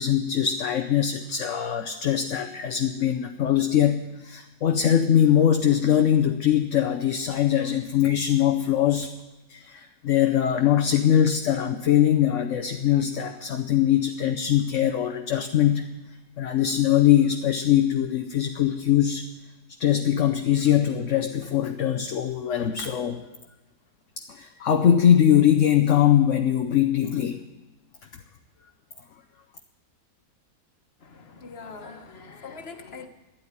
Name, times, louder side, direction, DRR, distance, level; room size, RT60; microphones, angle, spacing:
voice 1, 0.0-9.1 9.5-15.9 16.4-19.2 19.8-23.2 24.2-27.4, left 10 dB, 55° left, 6 dB, 1.0 m, -22 dB
voice 2, 31.0-33.1, left 4 dB, 40° left, 6 dB, 1.5 m, -42 dB
13.0 x 10.0 x 10.0 m, 1.1 s
omnidirectional pair, 1.8 m